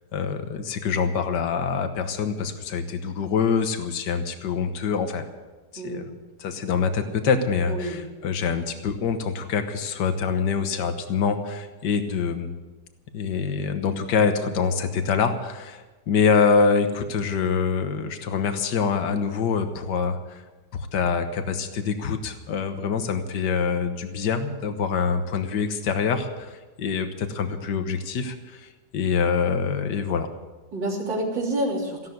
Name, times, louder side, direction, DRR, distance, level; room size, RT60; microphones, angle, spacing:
voice 1, 0.1-5.3 5.7-6.1 6.4-12.5 13.1-20.4 20.7-30.3, left 6 dB, 70° left, 7 dB, 1.8 m, -25 dB
voice 2, 5.8-6.1 7.7-8.0 30.7-32.1, right 1 dB, 90° right, -2 dB, 3.9 m, -28 dB
15.5 x 12.0 x 7.9 m, 1.2 s
omnidirectional pair, 2.0 m